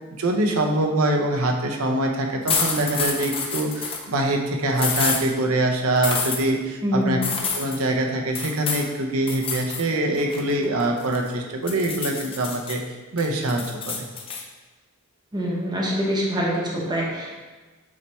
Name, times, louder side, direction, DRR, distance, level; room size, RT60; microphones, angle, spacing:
voice 1, 0.2-7.2 7.6-12.8 13.1-14.1, right 1 dB, 70° right, 2 dB, 0.8 m, -24 dB
sound 1, 2.5-4.0 4.8-5.2 6.0-6.4 7.2-7.8 8.3-8.9 9.3-9.8 10.2-11.3 11.7-12.7 13.2-14.4, left 5 dB, 25° left, 0.6 m, -27 dB
voice 2, 6.8-7.3 15.3-17.4, equal, 20° right, -3 dB, 0.9 m, -25 dB
7.3 x 3.3 x 4.4 m, 1.3 s
head